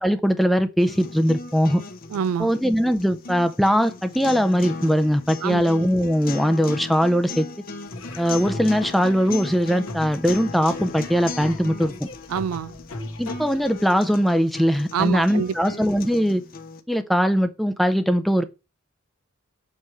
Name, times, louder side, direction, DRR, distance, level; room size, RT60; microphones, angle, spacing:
voice 1, 0.0-1.8 2.4-7.5 8.2-11.9 13.2-16.4 16.9-18.4, equal, ahead, 0.5 m, -21 dB
sound 1, 0.8-16.8, left 3 dB, 40° left, 0.7 m, -37 dB
voice 2, 2.1-2.5 5.4-5.7 12.3-12.8 14.9-15.8, right 7 dB, 85° right, 0.3 m, -26 dB
Laughter / Drum, 7.9-13.8, left 2 dB, 80° left, 1.4 m, -37 dB
7.6 x 3.1 x 4.6 m
head